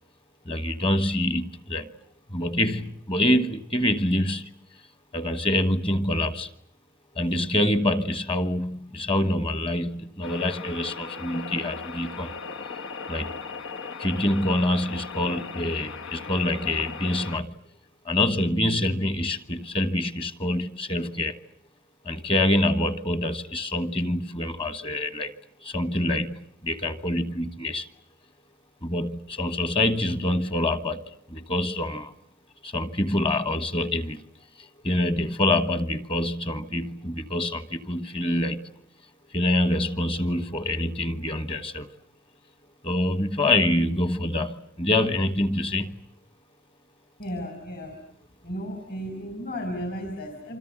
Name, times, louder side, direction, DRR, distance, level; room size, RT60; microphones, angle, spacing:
voice 1, 0.4-1.9 2.3-4.5 5.1-6.5 7.1-12.4 13.1-13.3 14.0-17.5 18.0-21.4 22.0-25.3 25.6-27.9 28.8-32.1 32.6-34.2 34.6-38.7 39.3-41.9 42.8-46.0, left 1 dB, 25° left, 1.3 m, -26 dB
sound 1, 10.2-17.4, left 5 dB, 85° left, 1.0 m, -38 dB
voice 2, 47.2-48.0 48.4-50.6, equal, 50° left, 4.4 m, -34 dB
27.5 x 26.0 x 7.7 m
head